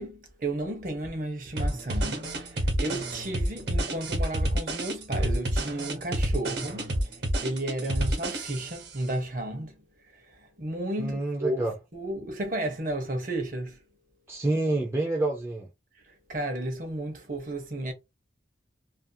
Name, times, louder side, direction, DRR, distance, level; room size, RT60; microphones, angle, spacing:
voice 1, 0.0-9.8 10.3-13.8 16.1-17.9, right 1 dB, 45° right, 0.7 m, -33 dB
sound 1, 1.6-8.9, right 1 dB, 70° right, 1.0 m, -29 dB
voice 2, 11.0-11.7 14.3-15.7, right 2 dB, 15° right, 0.3 m, -27 dB
2.4 x 2.3 x 2.6 m
head